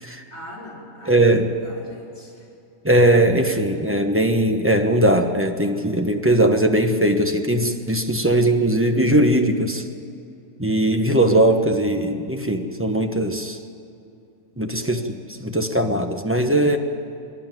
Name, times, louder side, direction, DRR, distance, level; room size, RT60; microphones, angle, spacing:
voice 1, 0.3-2.5 14.8-15.2, left 1 dB, 65° left, -4 dB, 6.0 m, -41 dB
voice 2, 1.1-1.5 2.8-9.9 10.6-13.6 14.6-15.0 15.4-16.8, right 1 dB, 10° right, 5 dB, 1.1 m, -19 dB
25.5 x 11.5 x 9.2 m, 2.6 s
omnidirectional pair, 1.5 m